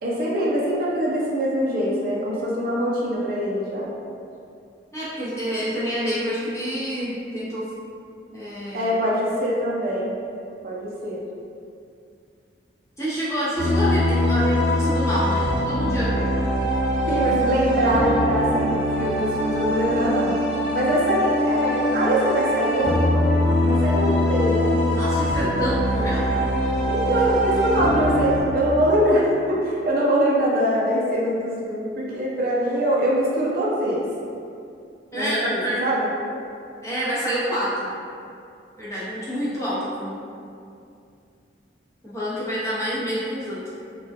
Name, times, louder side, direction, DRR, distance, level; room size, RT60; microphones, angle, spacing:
voice 1, 0.0-3.9 8.7-10.1 10.6-11.2 17.1-20.4 20.7-23.2 23.7-24.8 26.9-34.1 35.1-36.1, equal, 50° right, -5 dB, 0.4 m, -23 dB
voice 2, 4.9-7.6 8.3-8.9 13.0-16.3 24.9-26.3 26.7-27.3 35.1-35.9 36.8-37.9 38.8-40.2 42.0-43.7, equal, 15° left, -10 dB, 0.6 m, -27 dB
sound 1, 13.6-28.4, equal, 90° left, 0.9 m, -22 dB
2.3 x 2.1 x 2.5 m, 2.4 s
head